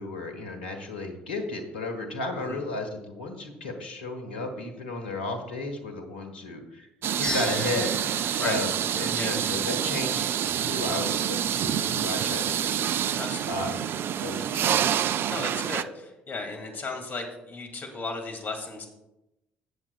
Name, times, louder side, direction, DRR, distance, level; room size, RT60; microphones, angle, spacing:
voice 1, 0.0-6.9 7.2-13.0 13.5-13.9 14.2-14.8, left 2 dB, 80° left, 5 dB, 1.3 m, -34 dB
sound 1, 7.0-15.8, right 9 dB, 45° right, 0.4 m, -27 dB
sound 2, 7.2-9.7, left 2 dB, 20° left, 3.6 m, -37 dB
voice 2, 13.2-13.7 15.3-18.9, left 3 dB, 40° left, 3 dB, 2.3 m, -35 dB
15.0 x 7.3 x 2.3 m, 0.92 s
figure-of-eight pair, 55°, 5 cm